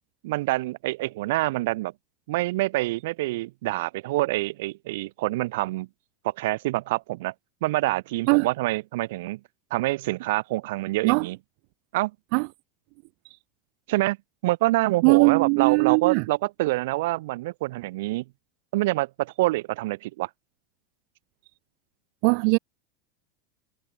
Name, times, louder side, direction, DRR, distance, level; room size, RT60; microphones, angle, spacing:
voice 1, 0.2-1.9 2.3-5.9 6.2-7.3 7.6-9.4 9.7-11.4 11.9-12.1 13.9-14.2 14.4-18.2 18.7-20.3, right 19 dB, 70° right, 3.2 m, -26 dB
voice 2, 15.0-16.2 22.2-22.6, right 40 dB or more, 55° right, 0.7 m, -20 dB
supercardioid pair, 150°, 0 cm